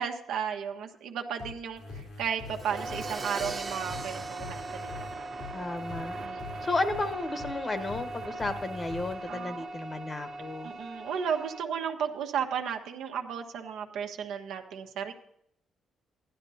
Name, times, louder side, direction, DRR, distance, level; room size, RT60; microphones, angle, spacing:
voice 1, 0.0-5.1 6.2-6.7 9.3-9.7 10.6-15.1, right 7 dB, 85° right, 3 dB, 1.2 m, -34 dB
sound 1, 1.4-9.1, left 3 dB, 85° left, 3.2 m, -43 dB
Crash cymbal, 2.5-6.2, right 3 dB, 25° right, 1.0 m, -43 dB
sound 2, 2.7-11.6, right 2 dB, 60° right, 1.3 m, -40 dB
voice 2, 5.5-6.2 6.6-10.7, left 2 dB, 30° left, 9 dB, 1.2 m, -33 dB
15.5 x 11.5 x 2.8 m, 0.72 s
cardioid pair, 90°, 0 cm